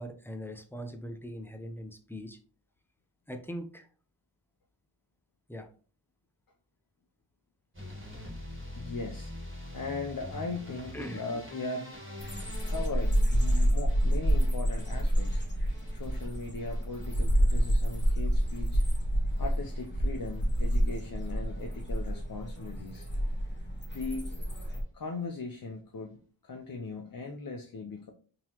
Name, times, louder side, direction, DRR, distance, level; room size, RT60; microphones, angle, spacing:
voice 1, 0.0-2.4 3.3-3.9 5.5-5.7 10.9-11.2, equal, 5° left, 6 dB, 0.5 m, -40 dB
sound 1, 7.7-19.9 20.2-20.8 21.1-21.7 22.0-22.2 22.5-22.6 22.9-23.0, left 1 dB, 25° right, 1.6 m, -46 dB
voice 2, 8.7-9.3 9.7-11.9 12.6-15.4 15.9-18.8 19.4-23.1 23.9-24.3 24.9-28.1, left 3 dB, 50° left, 2 dB, 0.6 m, -39 dB
sound 2, 12.2-24.8, equal, 25° left, 1.1 m, -28 dB
3.7 x 2.9 x 2.9 m, 0.42 s
wide cardioid pair, 45°, 45 cm